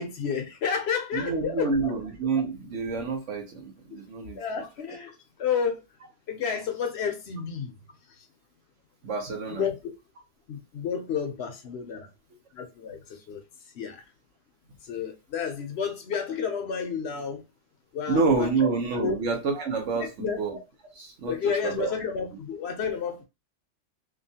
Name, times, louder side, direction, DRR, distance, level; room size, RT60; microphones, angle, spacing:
voice 1, 0.0-1.9 4.4-5.8 6.3-7.7 9.6-9.9 10.5-12.1 12.5-13.4 13.7-14.0 14.8-17.4 17.9-18.5 19.0-19.2 19.9-20.4 21.3-23.2, left 6 dB, 65° left, 0.8 m, -31 dB
voice 2, 1.1-4.4 9.0-9.6 18.1-20.6 20.9-21.9, right 4 dB, 75° right, 1.2 m, -28 dB
2.9 x 2.3 x 2.7 m
omnidirectional pair, 1.3 m